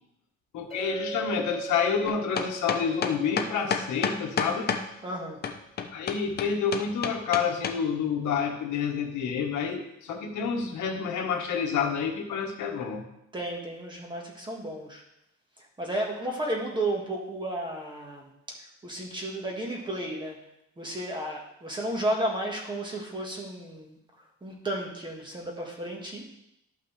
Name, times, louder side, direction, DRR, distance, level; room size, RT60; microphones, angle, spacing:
voice 1, 0.5-4.7 5.9-13.0, left 6 dB, 85° left, 2 dB, 1.4 m, -29 dB
Chink clink, 0.7-5.0, right 5 dB, ahead, 2.8 m, -40 dB
sound 1, 2.1-4.8 5.4-7.8, left 6 dB, 35° left, 0.6 m, -29 dB
voice 2, 5.0-5.4 13.3-15.0 15.8-20.4 20.8-24.0 24.4-26.2, right 1 dB, 15° right, -1 dB, 1.5 m, -33 dB
12.5 x 5.7 x 3.3 m, 0.81 s
cardioid pair, 175°, 29 cm